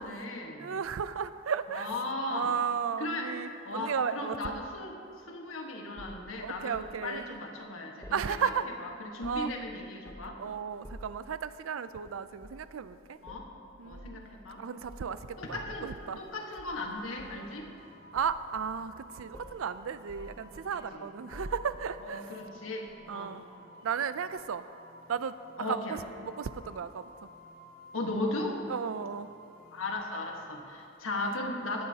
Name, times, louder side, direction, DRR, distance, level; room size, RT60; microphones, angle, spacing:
voice 1, 0.0-0.8 1.7-2.5 3.0-3.3 3.6-5.0 5.3-8.5 8.8-10.4 13.2-13.5 13.8-14.6 15.4-15.9 16.2-17.7 20.2-20.3 20.6-21.1 22.0-23.4 25.6-26.0 27.9-28.6 29.7-31.9, left 2 dB, 90° left, 1 dB, 1.5 m, -37 dB
voice 2, 0.6-2.0 2.3-4.5 6.4-7.2 8.1-8.6 9.2-9.5 10.4-13.2 13.8-14.2 14.6-15.2 15.5-16.2 18.1-22.3 23.1-23.4 23.8-24.6 25.1-26.0 26.2-27.1 28.7-29.3 31.2-31.3, right 7 dB, 85° right, 13 dB, 0.4 m, -34 dB
sound 1, 6.0-7.0 8.0-8.8 9.0-9.6 10.0-10.4 10.8-11.2 12.4-12.7 13.2-13.5 13.9-14.2 14.8-16.3 16.6-17.5 18.1-19.0 19.3-19.6 20.1-20.9 21.3-21.9 22.9-23.0, equal, 15° left, 1.0 m, -49 dB
sound 2, 15.8-30.7, equal, 50° left, 2.4 m, -55 dB
17.5 x 11.0 x 2.8 m, 2.6 s
head